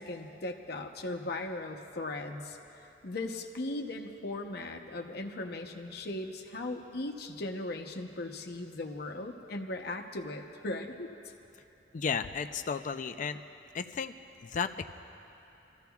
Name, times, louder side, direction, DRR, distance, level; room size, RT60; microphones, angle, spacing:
voice 1, 0.0-11.1, left 2 dB, 65° left, 4 dB, 0.8 m, -38 dB
voice 2, 11.9-13.4 13.7-14.1 14.4-14.8, left 6 dB, 45° left, 9 dB, 0.4 m, -33 dB
29.0 x 14.0 x 2.3 m, 2.9 s
head